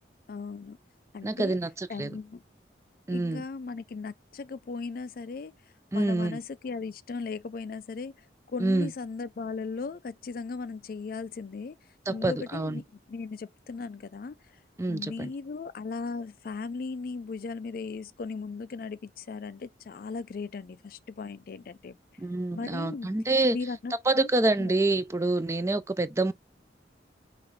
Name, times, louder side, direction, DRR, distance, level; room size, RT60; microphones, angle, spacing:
voice 1, 0.3-0.8 1.1-1.6 1.9-2.4 3.1-5.5 5.9-8.1 8.5-11.8 12.1-14.4 14.9-22.0 22.5-23.1 23.5-24.3 24.6-24.7, left 4 dB, 55° left, 0.4 m, -37 dB
voice 2, 1.2-2.1 3.1-3.4 5.9-6.4 8.6-8.9 12.1-12.8 14.8-15.3 22.2-23.6 24.1-26.3, right 2 dB, 15° right, 0.4 m, -27 dB
5.7 x 2.5 x 3.2 m
head